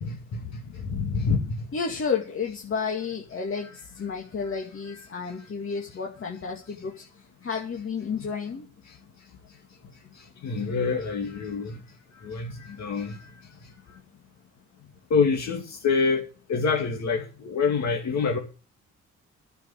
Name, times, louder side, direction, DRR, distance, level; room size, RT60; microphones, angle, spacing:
voice 1, 0.0-1.7 10.4-11.8 12.2-13.2 15.1-16.2 16.5-18.4, left 5 dB, 60° left, 2.6 m, -26 dB
voice 2, 1.7-6.9 7.4-8.7, left 5 dB, 45° left, 2.4 m, -31 dB
10.5 x 7.4 x 8.1 m
cardioid pair, 90°, 30 cm